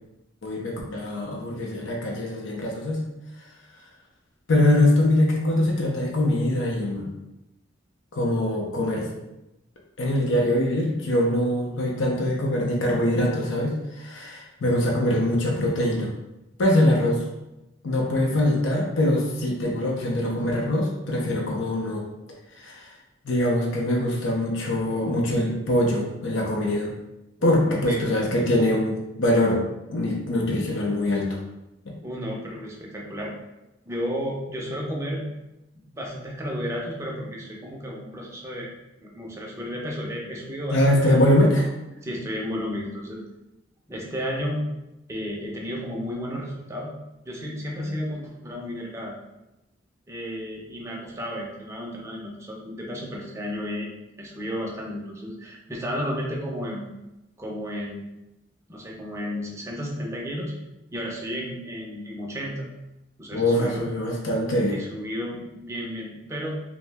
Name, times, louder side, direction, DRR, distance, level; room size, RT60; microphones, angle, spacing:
voice 1, 0.4-3.0 4.5-7.1 8.1-9.1 10.0-16.1 16.6-17.2 17.8-22.1 22.6-22.9 23.2-26.9 27.4-29.6 29.9-31.3 31.9-32.0 40.7-41.7 63.3-64.8, left 1 dB, 90° left, -1 dB, 0.5 m, -23 dB
voice 2, 27.4-28.1 32.0-33.3 33.8-35.2 35.9-38.7 39.0-41.2 42.0-43.2 43.9-44.6 45.1-47.0 47.3-49.2 50.1-53.9 54.2-56.9 57.4-58.0 58.7-60.5 60.9-62.7 63.2-63.8 64.7-66.6, equal, 15° right, -2 dB, 0.4 m, -33 dB
2.6 x 2.0 x 3.3 m, 0.94 s
head